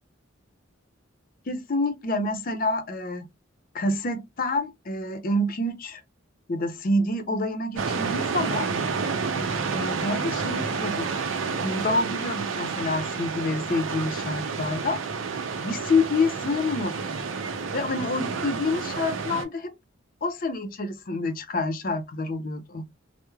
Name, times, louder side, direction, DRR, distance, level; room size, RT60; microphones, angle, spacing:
voice 1, 1.5-3.3 3.7-6.0 6.5-8.7 9.7-11.2 11.6-15.0 15.6-17.2 17.7-19.7 20.2-22.8, left 2 dB, 45° left, 0.6 m, -27 dB
sound 1, 7.8-19.4, right 5 dB, 85° right, 0.6 m, -30 dB
3.1 x 2.0 x 2.3 m
head